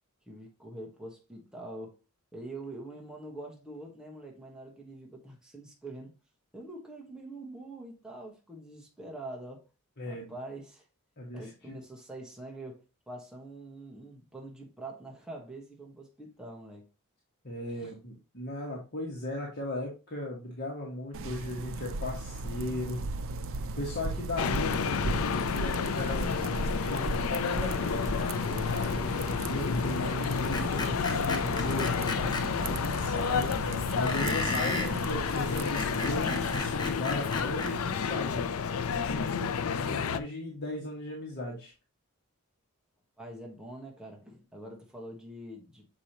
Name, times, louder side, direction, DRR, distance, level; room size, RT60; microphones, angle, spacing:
voice 1, 0.3-2.0 2.3-6.1 6.5-9.6 10.1-10.8 11.3-16.9 17.8-17.9 43.2-45.9, right 2 dB, 5° right, 1.3 m, -44 dB
voice 2, 10.0-10.3 11.2-11.7 17.4-23.0 23.8-26.3 26.8-33.5 33.9-38.5 38.9-41.7, left 2 dB, 50° left, 1.6 m, -37 dB
sound 1, 21.1-36.7, right 2 dB, 65° right, 0.6 m, -37 dB
sound 2, 24.4-40.2, left 6 dB, 75° left, 0.5 m, -31 dB
Screech, 30.5-32.4 34.1-34.9 35.6-37.7, left 2 dB, 20° left, 1.0 m, -33 dB
7.2 x 5.0 x 2.9 m
head